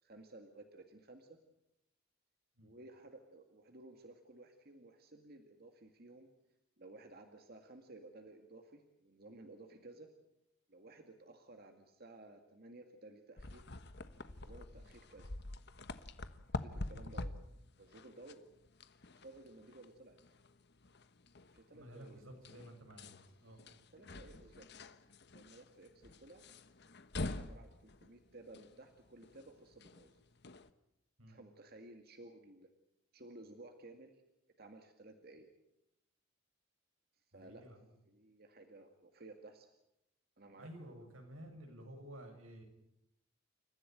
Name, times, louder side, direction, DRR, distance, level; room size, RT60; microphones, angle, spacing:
voice 1, 0.0-1.4 2.6-6.3 6.8-10.1 10.7-13.6 14.3-15.3 16.5-17.3 17.8-18.4 19.2-20.2 21.5-22.2 23.9-24.7 25.3-26.4 27.3-30.2 31.3-32.7 33.1-34.2 34.6-35.5 37.2-37.6 38.1-39.7 40.4-40.9, right 2 dB, 50° right, 5 dB, 2.1 m, -56 dB
sound 1, 13.4-30.7, left 2 dB, 55° left, 1.2 m, -47 dB
voice 2, 21.7-23.6 31.2-31.4 37.3-37.9 40.6-42.6, equal, 90° right, 4 dB, 6.6 m, -53 dB
28.5 x 15.0 x 9.2 m, 0.84 s
head